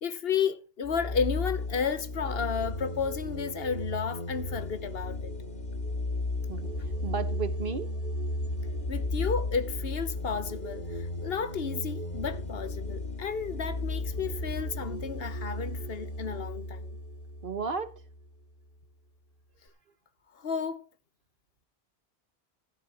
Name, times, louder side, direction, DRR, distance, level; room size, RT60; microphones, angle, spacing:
voice 1, 0.0-5.3 8.9-17.0 20.3-20.9, left 6 dB, 65° left, 1.2 m, -32 dB
sound 1, 0.8-18.2, left 2 dB, 50° left, 2.2 m, -34 dB
voice 2, 7.0-7.9 17.4-18.0, right 5 dB, 55° right, 1.4 m, -33 dB
16.0 x 12.5 x 3.0 m
omnidirectional pair, 1.1 m